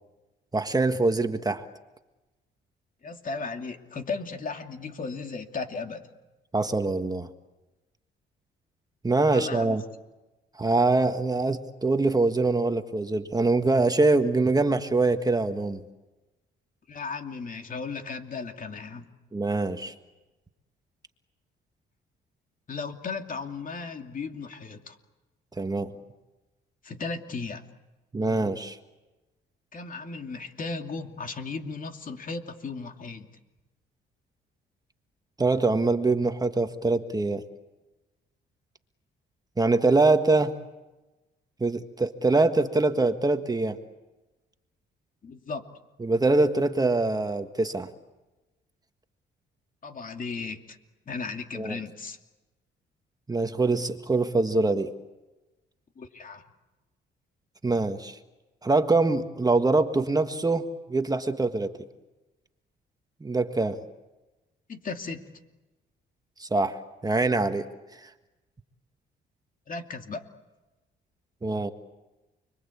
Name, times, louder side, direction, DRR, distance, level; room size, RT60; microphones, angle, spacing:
voice 1, 0.5-1.6 6.5-7.3 9.0-9.8 10.6-15.8 19.3-19.9 25.6-25.9 28.1-28.8 35.4-37.4 39.6-40.5 41.6-43.8 46.0-47.9 51.5-51.8 53.3-54.9 57.6-58.2 58.6-61.7 63.2-63.8 66.4-67.7 68.0-68.1 71.4-71.7, right 3 dB, 20° right, 7 dB, 1.6 m, -24 dB
voice 2, 3.0-6.1 9.3-9.8 16.9-19.1 22.7-25.0 26.8-27.6 29.7-33.3 45.2-45.6 49.8-50.8 51.1-52.2 56.0-56.4 64.7-65.2 69.7-70.2, left 4 dB, 45° left, 5 dB, 2.7 m, -36 dB
29.5 x 22.5 x 8.5 m, 1.1 s
cardioid pair, 90°, 20 cm